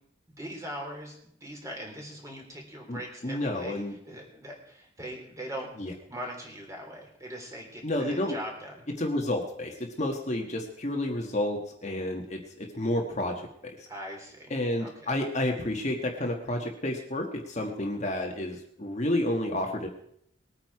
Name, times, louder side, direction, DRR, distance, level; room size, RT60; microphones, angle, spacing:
voice 1, 0.3-3.8 4.1-5.7 6.1-8.8 13.9-14.5 14.8-15.2, equal, 15° right, 0 dB, 3.4 m, -41 dB
voice 2, 2.9-3.9 5.8-5.9 7.8-8.3 9.0-13.3 13.6-13.7 14.5-19.9, left 1 dB, 35° left, 2 dB, 1.5 m, -30 dB
20.5 x 9.2 x 4.8 m, 0.71 s
head